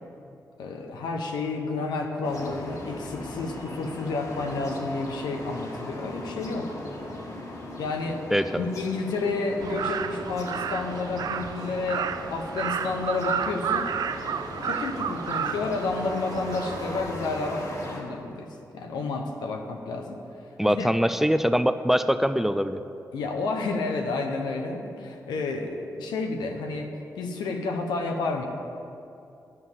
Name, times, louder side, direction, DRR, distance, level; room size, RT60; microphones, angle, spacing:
voice 1, 0.6-6.8 7.8-8.2 8.6-13.9 14.6-17.6 17.9-18.5 18.7-20.2 20.7-20.9 23.1-26.9 27.2-28.4, left 3 dB, 90° left, 3 dB, 0.9 m, -30 dB
sound 1, 2.2-18.0, left 1 dB, 55° left, 2.0 m, -38 dB
voice 2, 8.3-8.6 20.6-22.8, equal, 5° right, 10 dB, 0.4 m, -23 dB
Crow, 9.6-17.0, right 7 dB, 70° right, 0.4 m, -32 dB
9.5 x 5.5 x 8.0 m, 2.6 s
supercardioid pair, 50°, 7 cm